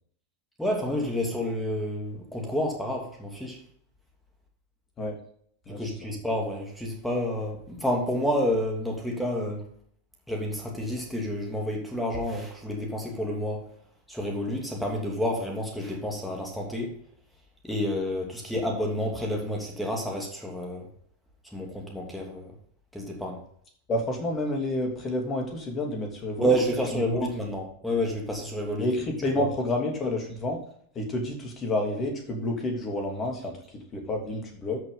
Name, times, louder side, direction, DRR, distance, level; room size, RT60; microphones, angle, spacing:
voice 1, 0.6-3.6 5.8-9.6 10.3-13.6 14.1-17.0 17.6-20.9 21.5-22.5 22.9-23.4 26.4-28.9 29.4-29.5, equal, ahead, 0 dB, 2.8 m, -29 dB
voice 2, 23.9-26.5 26.9-27.3 28.8-30.6 30.9-34.8, left 1 dB, 25° left, 2 dB, 3.0 m, -29 dB
12.5 x 6.2 x 3.9 m, 0.62 s
figure-of-eight pair, 90°, 0 cm